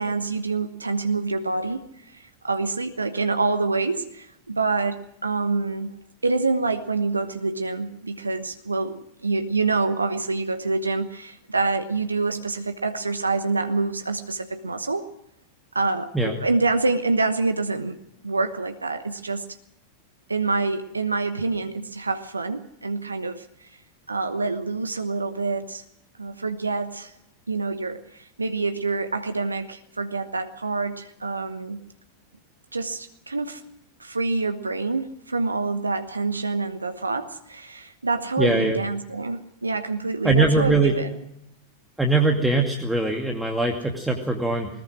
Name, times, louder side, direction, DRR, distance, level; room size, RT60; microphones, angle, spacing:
voice 1, 0.0-5.9 6.2-15.1 15.7-18.0 18.2-19.4 20.3-23.7 24.1-25.8 26.2-27.1 27.5-31.8 32.7-33.6 34.0-41.1, right 3 dB, 80° right, 9 dB, 1.1 m, -26 dB
voice 2, 38.4-38.8 40.2-40.9 42.0-44.7, right 2 dB, 5° right, 2 dB, 2.4 m, -21 dB
20.5 x 20.0 x 6.3 m, 0.77 s
figure-of-eight pair, 90°, 0 cm